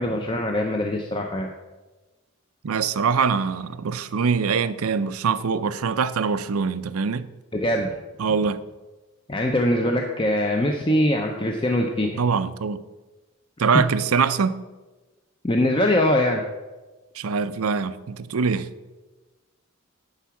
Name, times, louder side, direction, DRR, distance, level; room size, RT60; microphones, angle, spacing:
voice 1, 0.0-1.5 7.5-7.9 9.3-12.2 15.4-16.4, left 1 dB, 25° left, 0.6 m, -22 dB
voice 2, 2.6-7.3 8.2-8.6 12.2-12.8 13.6-14.6 17.1-18.7, right 5 dB, 90° right, 0.5 m, -23 dB
10.5 x 4.7 x 7.1 m
head